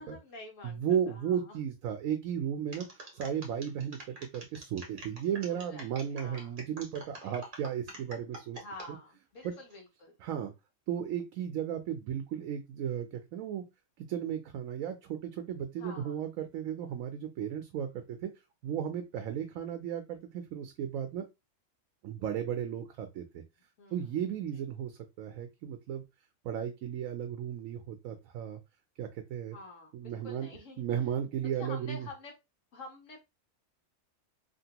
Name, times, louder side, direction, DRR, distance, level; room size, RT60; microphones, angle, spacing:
voice 1, 0.0-1.6 5.5-5.8 6.1-6.6 7.2-7.4 8.5-10.2 15.8-16.2 22.3-22.4 23.3-23.4 23.8-24.1 29.5-30.8 31.5-32.3 32.7-33.2, left 2 dB, 75° left, 1 dB, 1.3 m, -48 dB
voice 2, 0.6-2.9 3.1-8.6 9.4-9.5 10.2-10.5 10.9-13.6 14.0-18.3 18.6-21.2 22.0-23.4 23.9-26.0 26.4-28.6 29.0-29.6 29.9-30.5 30.8-32.1, right 9 dB, 90° right, 6 dB, 1.0 m, -35 dB
sound 1, 2.7-8.9 9.4-9.8, right 1 dB, 45° right, 1.0 m, -47 dB
2.9 x 2.5 x 2.8 m, 0.23 s
omnidirectional pair, 1.4 m